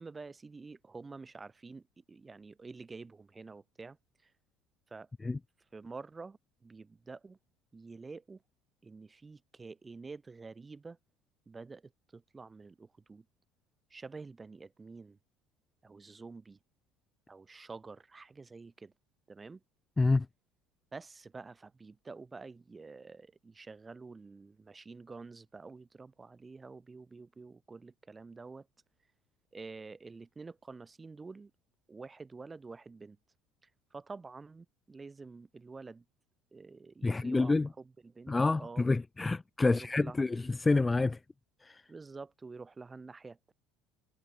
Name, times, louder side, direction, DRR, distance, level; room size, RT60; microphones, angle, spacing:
voice 1, 0.0-4.0 4.2-4.3 4.9-5.1 5.7-7.4 7.7-8.4 8.8-11.0 11.5-13.3 13.9-15.2 15.8-16.6 17.3-18.9 19.3-19.6 20.9-28.7 29.5-31.5 31.9-33.2 33.6-36.0 36.5-38.9 39.6-40.5 41.9-43.5, right 4 dB, 15° right, 6.3 m, -48 dB
voice 2, 37.0-37.7 38.3-41.2 41.6-41.8, left 3 dB, 10° left, 1.0 m, -28 dB
cardioid pair, 155°, 0 cm